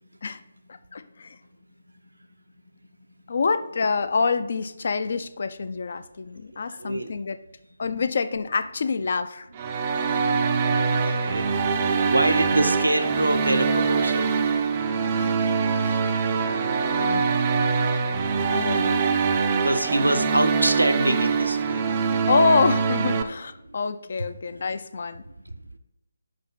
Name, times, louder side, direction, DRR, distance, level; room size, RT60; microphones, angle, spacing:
voice 1, 0.9-1.4 3.3-7.4 7.8-9.5 15.2-16.1 16.8-17.4 18.5-19.0 22.3-25.2, left 4 dB, 45° left, 12 dB, 0.5 m, -26 dB
voice 2, 6.5-7.1 10.7-11.5 12.1-14.4 19.5-22.0 24.2-24.3, right 1 dB, 80° right, 6 dB, 0.8 m, -25 dB
sound 1, 9.5-23.2, right 5 dB, 25° right, 0.5 m, -23 dB
5.2 x 5.2 x 5.7 m, 0.85 s
figure-of-eight pair, 150°, 0 cm